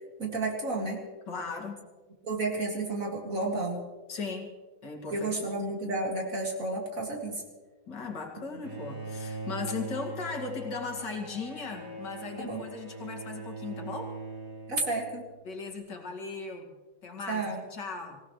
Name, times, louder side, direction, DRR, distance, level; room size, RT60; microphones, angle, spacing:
voice 1, 0.2-1.0 2.2-3.8 5.1-7.4 12.4-12.6 14.7-15.2 17.3-17.6, right 2 dB, 40° right, 0 dB, 2.6 m, -31 dB
voice 2, 1.3-1.9 4.1-4.5 4.8-5.6 7.9-14.2 15.4-16.7 17.0-17.4 17.7-18.2, left 4 dB, 55° left, 2 dB, 2.8 m, -37 dB
Bowed string instrument, 8.6-15.4, right 2 dB, 65° right, 4.6 m, -41 dB
25.5 x 17.0 x 3.2 m, 1.4 s
omnidirectional pair, 2.2 m